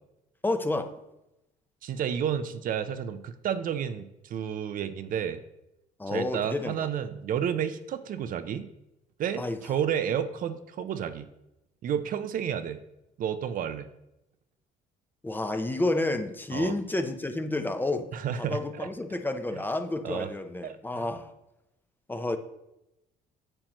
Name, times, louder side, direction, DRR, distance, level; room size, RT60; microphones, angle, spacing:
voice 1, 0.4-0.9 6.0-6.9 9.4-9.6 15.2-18.1 18.4-21.3 22.1-22.4, left 2 dB, 10° left, 8 dB, 0.6 m, -30 dB
voice 2, 1.8-5.4 6.1-8.7 9.2-11.3 11.8-12.8 13.2-13.9 16.5-16.7 18.1-18.9 19.5-19.6 20.0-20.3 20.6-21.0, right 8 dB, 55° right, 11 dB, 0.5 m, -31 dB
8.8 x 7.5 x 3.0 m, 0.89 s
cardioid pair, 110°, 17 cm